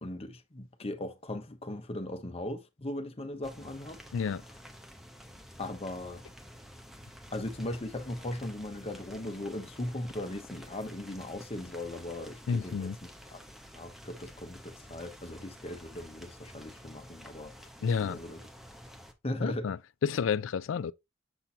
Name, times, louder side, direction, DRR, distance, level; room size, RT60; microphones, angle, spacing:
voice 1, 0.0-4.0 5.6-6.2 7.3-12.9 13.3-13.4 13.7-17.5 18.0-18.4 19.2-19.7, left 1 dB, 30° left, 0.8 m, -38 dB
sound 1, 3.4-19.1, equal, ahead, 0.8 m, -50 dB
voice 2, 4.1-4.4 12.5-13.0 17.8-18.2 19.4-19.8 20.0-20.9, left 6 dB, 70° left, 0.4 m, -30 dB
7.0 x 5.9 x 2.7 m
head